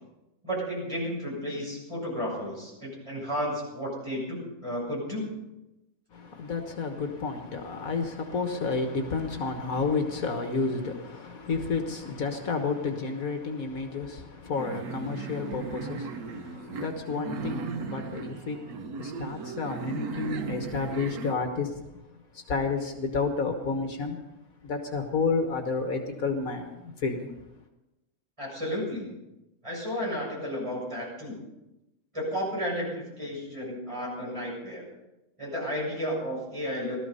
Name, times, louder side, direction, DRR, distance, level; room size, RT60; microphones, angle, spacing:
voice 1, 0.4-5.3 28.4-29.1 29.6-31.4 32.1-34.8 35.4-37.0, equal, 20° right, 7.3 m, -33 dB
voice 2, 6.1-22.0 22.3-24.2 24.6-27.3, left 4 dB, 70° left, 1.8 m, -31 dB
sound 1, 14.6-21.3, right 5 dB, 85° right, 1.4 m, -36 dB
17.5 x 13.5 x 5.5 m
omnidirectional pair, 1.6 m